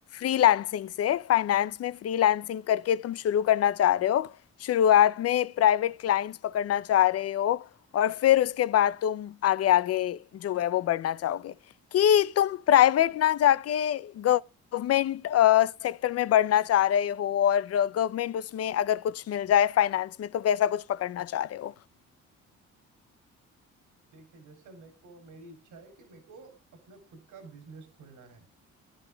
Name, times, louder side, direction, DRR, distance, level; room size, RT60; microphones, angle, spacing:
voice 1, 0.1-4.3 4.6-7.7 7.9-11.5 11.9-14.4 14.7-21.7, left 11 dB, 55° left, 0.5 m, -24 dB
voice 2, 24.1-28.4, right 3 dB, 80° right, 3.3 m, -50 dB
20.5 x 10.0 x 2.3 m
cardioid pair, 90°, 30 cm